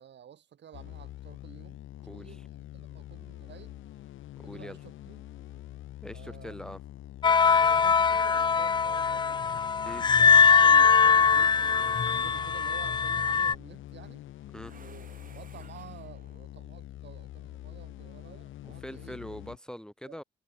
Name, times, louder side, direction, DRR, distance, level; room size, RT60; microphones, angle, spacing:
voice 1, 0.0-1.8 2.1-3.7 4.4-5.2 6.1-6.5 7.5-9.4 9.8-14.2 14.8-19.2 20.0-20.2, right 9 dB, 60° right, 4.5 m, -51 dB
sound 1, 0.7-19.6, left 14 dB, 80° left, 1.4 m, -45 dB
voice 2, 2.0-2.4 4.4-4.8 6.0-6.8 9.9-10.0 14.5-14.7 18.6-20.2, equal, 5° left, 1.5 m, -42 dB
sound 2, 7.2-13.5, left 6 dB, 25° left, 0.3 m, -22 dB
sound 3, 11.1-13.0 14.6-16.3, right 6 dB, 45° right, 4.2 m, -54 dB
cardioid pair, 90°, 20 cm